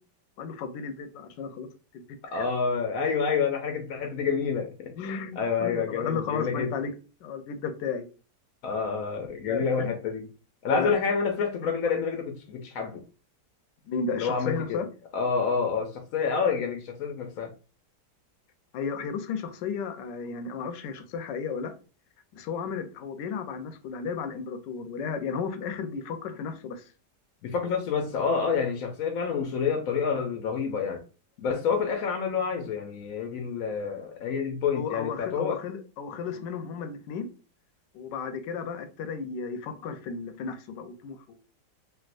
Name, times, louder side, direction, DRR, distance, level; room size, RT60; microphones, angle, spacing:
voice 1, 0.4-1.7 1.9-2.0 2.3-2.5 5.0-6.9 7.2-8.1 9.4-9.9 10.7-10.9 13.9-14.9 18.7-21.7 22.4-26.8 34.7-37.3 37.9-41.4, left 6 dB, 90° left, 1.3 m, -33 dB
voice 2, 2.2-4.9 5.4-6.7 8.6-10.3 10.6-13.0 14.1-14.8 15.1-17.5 27.4-31.0 31.4-35.6, left 5 dB, 70° left, 0.8 m, -28 dB
3.4 x 2.6 x 2.4 m
omnidirectional pair, 1.8 m